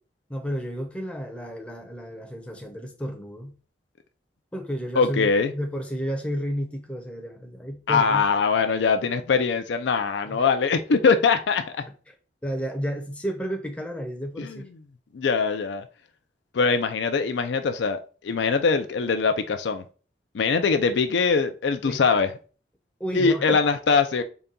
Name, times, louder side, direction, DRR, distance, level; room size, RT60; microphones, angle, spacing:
voice 1, 0.3-3.6 4.5-8.3 10.3-10.4 12.4-14.7 21.8-22.2 23.0-23.6, equal, 5° left, 0.6 m, -32 dB
voice 2, 5.0-5.5 7.9-11.9 14.4-14.6 15.1-15.9 16.5-19.8 20.3-22.3 23.1-24.2, left 5 dB, 80° left, 0.4 m, -22 dB
4.0 x 2.3 x 3.6 m
head